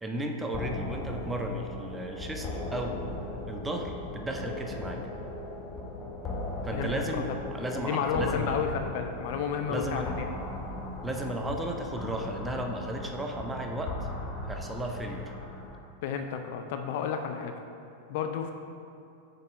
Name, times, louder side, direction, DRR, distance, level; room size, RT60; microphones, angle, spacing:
voice 1, 0.0-3.0 3.5-5.0 6.6-8.7 9.7-10.1 11.0-13.9 14.4-15.3, right 1 dB, 10° right, 2 dB, 0.5 m, -34 dB
sound 1, 0.5-15.8, left 2 dB, 20° left, 0.8 m, -38 dB
voice 2, 6.7-7.2 7.8-10.2 16.0-17.5 18.1-18.5, left 7 dB, 50° left, 5 dB, 0.4 m, -31 dB
6.5 x 4.1 x 3.6 m, 2.6 s
figure-of-eight pair, 90°, 0 cm